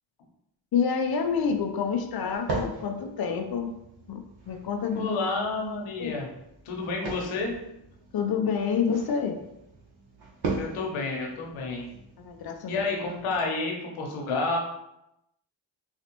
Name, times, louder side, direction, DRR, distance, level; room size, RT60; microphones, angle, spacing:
voice 1, 0.7-3.7 4.1-4.2 4.5-5.1 6.0-6.3 8.1-9.4 12.2-12.8, left 6 dB, 50° left, 5 dB, 0.6 m, -28 dB
sound 1, 1.0-13.4, right 3 dB, 55° right, 1.2 m, -40 dB
voice 2, 4.9-6.3 6.6-7.5 10.6-11.8 12.7-14.6, left 3 dB, 85° left, 0 dB, 1.0 m, -30 dB
4.1 x 2.4 x 2.9 m, 0.84 s
supercardioid pair, 60°, 48 cm